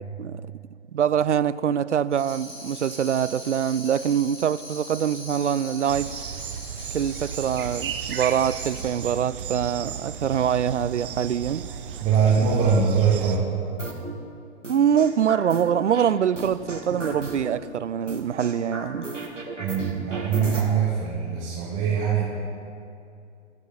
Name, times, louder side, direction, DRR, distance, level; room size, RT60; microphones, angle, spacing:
voice 1, 0.9-6.1 6.9-11.7 14.7-19.1, right 8 dB, 70° right, 0.5 m, -24 dB
Tambourine, 2.1-9.2, left 1 dB, 50° left, 4.0 m, -41 dB
sound 1, 5.9-13.4, right 8 dB, 45° right, 0.9 m, -35 dB
voice 2, 12.0-13.5 19.6-22.2, right 6 dB, 20° right, 2.5 m, -22 dB
sound 2, 13.8-14.1 14.6-16.1 16.4-17.6 18.1-20.6, right 3 dB, 90° right, 1.8 m, -34 dB
23.5 x 8.0 x 4.3 m
figure-of-eight pair, 115°, 36 cm